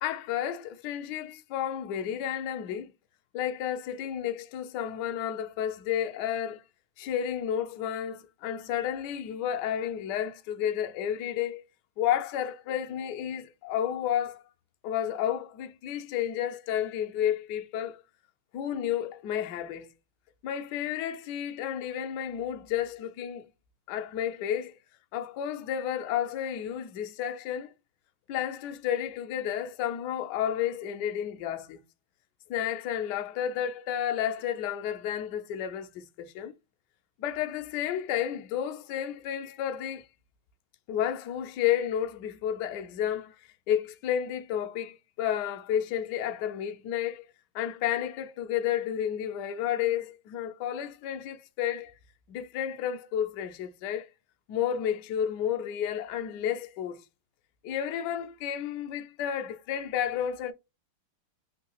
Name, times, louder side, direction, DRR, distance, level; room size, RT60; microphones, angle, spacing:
voice 1, 0.0-2.9 3.3-6.6 7.0-11.6 12.0-14.4 14.8-18.0 18.5-19.9 20.4-23.5 23.9-24.8 25.1-27.7 28.3-31.8 32.5-36.6 37.2-40.0 40.9-43.3 43.7-47.3 47.5-51.9 52.3-54.1 54.5-57.0 57.6-60.5, left 10 dB, 75° left, 1.0 m, -31 dB
3.7 x 2.7 x 2.9 m
omnidirectional pair, 2.4 m